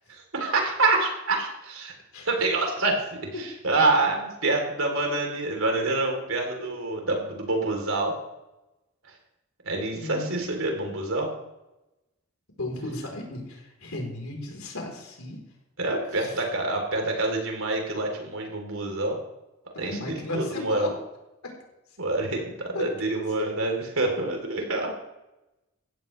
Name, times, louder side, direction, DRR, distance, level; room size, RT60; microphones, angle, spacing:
voice 1, 0.1-1.9 2.3-2.9 3.4-8.2 9.6-11.3 15.8-19.2 19.8-20.9 22.0-24.9, right 2 dB, 75° right, 2 dB, 3.6 m, -26 dB
voice 2, 12.6-15.4 16.1-16.4 19.8-20.9 21.4-21.5 22.7-22.8 23.4-23.5, left 2 dB, 90° left, 1 dB, 4.0 m, -35 dB
15.5 x 13.5 x 3.4 m, 0.94 s
head